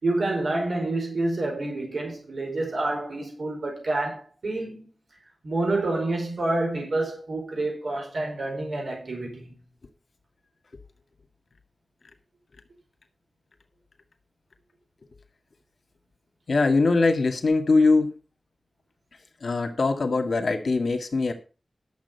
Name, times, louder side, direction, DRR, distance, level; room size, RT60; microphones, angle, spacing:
voice 1, 0.0-4.9 5.4-9.6, right 2 dB, 80° right, 4.9 m, -28 dB
voice 2, 16.5-18.1 19.4-21.3, left 3 dB, 75° left, 2.0 m, -22 dB
12.0 x 7.5 x 5.7 m
wide cardioid pair, 100°, 0 cm